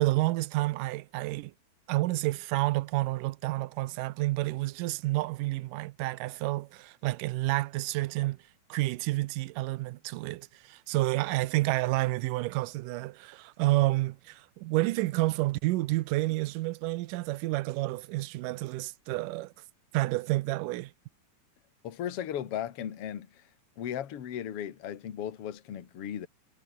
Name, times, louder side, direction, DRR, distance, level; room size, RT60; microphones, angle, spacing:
voice 1, 0.0-1.5 1.9-8.4 8.7-19.5 19.9-20.9, right 19 dB, 85° right, 2.3 m, -29 dB
voice 2, 21.8-23.4 23.8-26.3, left 10 dB, 50° left, 2.5 m, -36 dB
omnidirectional pair, 3.7 m